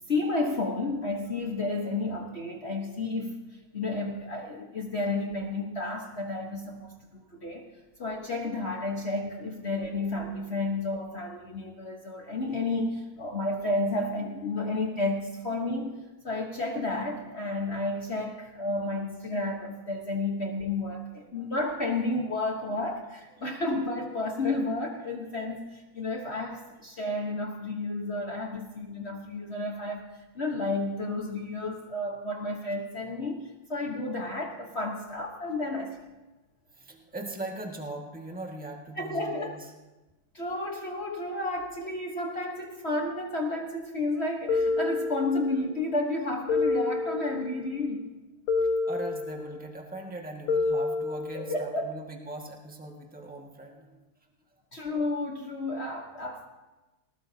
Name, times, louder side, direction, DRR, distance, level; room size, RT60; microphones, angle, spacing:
voice 1, 0.1-3.4 3.7-7.7 8.0-16.0 16.2-30.1 30.3-36.0 39.0-39.5 40.3-48.1 51.3-51.9 54.7-56.5, left 2 dB, 40° left, 1 dB, 1.2 m, -31 dB
voice 2, 36.7-39.7 48.6-54.0, right 2 dB, 5° right, 0 dB, 1.5 m, -40 dB
sound 1, 44.5-45.7 46.5-47.7 48.5-49.6 50.5-51.7, left 3 dB, 75° left, 2.3 m, -28 dB
19.5 x 19.0 x 2.8 m, 1.1 s
omnidirectional pair, 2.2 m